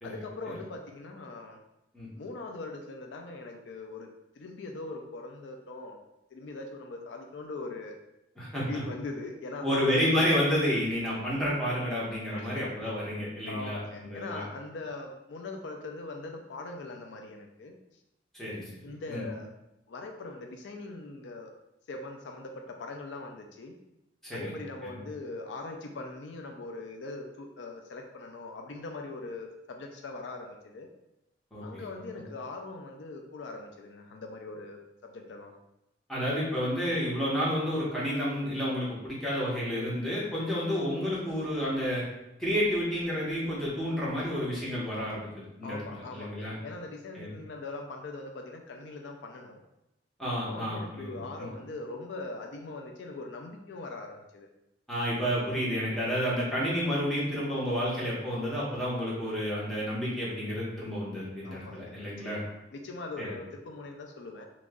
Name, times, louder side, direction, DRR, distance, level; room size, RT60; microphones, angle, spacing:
voice 1, 0.0-1.6 2.2-4.1 4.4-6.0 6.3-8.0 8.7-10.4 12.3-12.9 13.5-17.8 18.8-19.5 19.9-21.5 21.9-23.8 24.3-30.9 31.6-35.5 45.6-49.6 50.5-54.5 61.4-64.5, left 3 dB, 85° left, 3 dB, 0.4 m, -41 dB
voice 2, 8.4-8.8 9.6-14.4 18.3-18.6 19.1-19.2 24.2-24.5 24.8-25.0 31.5-31.9 32.1-32.2 36.1-42.0 42.4-46.5 47.1-47.3 50.2-51.2 54.9-62.4 63.2-63.3, equal, ahead, -8 dB, 1.1 m, -30 dB
3.0 x 2.5 x 3.6 m, 0.89 s
head